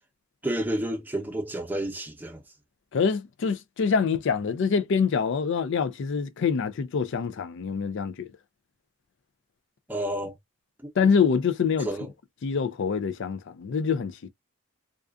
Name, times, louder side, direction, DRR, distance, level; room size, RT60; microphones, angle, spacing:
voice 1, 0.4-2.4 9.9-10.4 10.8-10.9 11.8-12.1, right 1 dB, 10° right, 0.7 m, -30 dB
voice 2, 2.9-8.3 11.0-11.9 12.4-14.3, left 6 dB, 60° left, 0.4 m, -25 dB
2.4 x 2.3 x 2.3 m
head